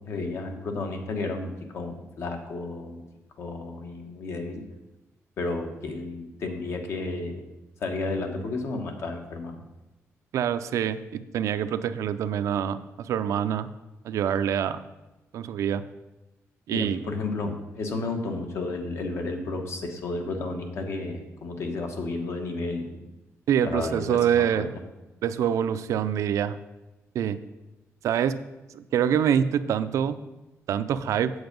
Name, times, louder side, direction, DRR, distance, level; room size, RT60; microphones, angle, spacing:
voice 1, 0.1-3.0 3.4-4.6 5.4-7.4 7.8-9.6 16.7-23.1 23.6-24.7, left 3 dB, 55° left, 4 dB, 1.3 m, -32 dB
voice 2, 10.3-13.7 14.0-14.8 15.3-15.8 16.7-17.0 23.5-24.7 25.2-26.6 27.1-27.4 28.0-28.4 28.7-30.1 30.7-31.3, right 9 dB, 80° right, 11 dB, 0.5 m, -25 dB
8.0 x 7.8 x 5.2 m, 1.0 s
wide cardioid pair, 170°, 5 cm